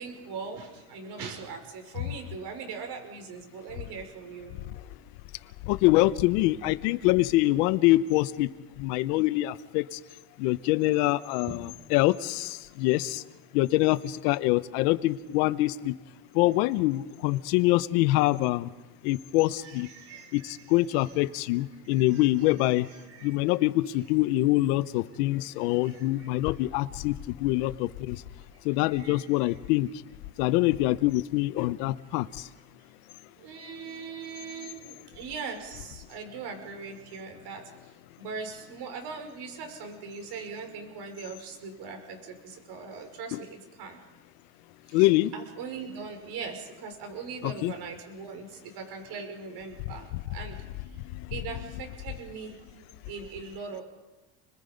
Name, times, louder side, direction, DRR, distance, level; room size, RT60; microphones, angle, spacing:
voice 1, 0.0-4.6 11.5-11.6 19.6-21.1 21.7-23.4 25.8-26.5 28.9-29.5 33.4-37.6 38.2-44.0 44.9-50.6 51.3-53.8, right 5 dB, 55° right, 5 dB, 5.7 m, -41 dB
voice 2, 5.7-8.5 8.8-10.0 10.4-13.2 13.5-15.9 16.3-18.7 19.0-19.9 20.3-22.9 23.2-27.1 27.4-28.2 28.6-29.9 30.4-32.3 43.3-43.4 44.9-45.3 47.4-47.7, left 18 dB, 85° left, 14 dB, 1.1 m, -25 dB
29.5 x 21.5 x 5.3 m, 1.2 s
cardioid pair, 135°, 46 cm